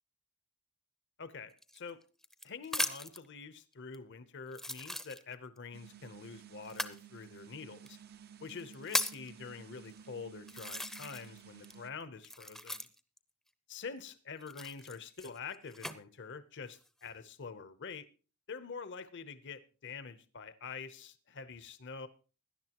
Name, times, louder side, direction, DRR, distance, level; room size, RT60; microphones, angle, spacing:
voice 1, 1.2-2.0 2.4-8.0 8.4-12.9 13.7-18.1 18.5-22.1, left 5 dB, 55° left, 0.8 m, -46 dB
sound 1, 1.6-3.3 3.9-4.0 4.5-5.6 6.7-7.0 7.9-8.0 8.5-9.3 10.0-10.1 10.5-11.4 11.6-13.2 14.4-16.0 16.6-17.1, left 1 dB, ahead, 0.7 m, -38 dB
sound 2, 5.7-11.9, right 8 dB, 45° right, 0.6 m, -54 dB
17.0 x 11.0 x 3.0 m
head